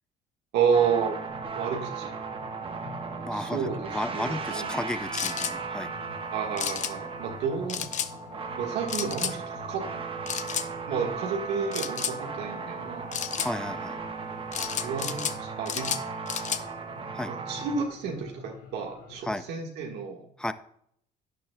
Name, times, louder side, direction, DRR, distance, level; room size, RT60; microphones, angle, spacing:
voice 1, 0.5-1.2 1.5-2.1 3.3-3.8 4.1-4.7 6.3-7.9 8.6-9.9 10.9-13.0 14.7-15.9 17.3-20.2, right 6 dB, 85° right, 0 dB, 1.4 m, -30 dB
sound 1, 0.7-17.9, right 5 dB, 30° right, 1.0 m, -36 dB
sound 2, 1.3-19.3, left 5 dB, 90° left, 2.4 m, -49 dB
voice 2, 3.2-5.9 13.4-14.0 17.1-17.3 19.2-19.5 20.4-20.5, left 1 dB, 5° left, 12 dB, 0.5 m, -33 dB
sound 3, 5.1-5.5 6.6-6.9 7.7-8.1 8.9-9.3 10.3-10.7 11.7-12.2 13.1-13.5 14.5-15.4 15.7-16.6, left 9 dB, 45° left, 0.6 m, -31 dB
11.5 x 9.2 x 2.2 m, 0.70 s
cardioid pair, 110°, 17 cm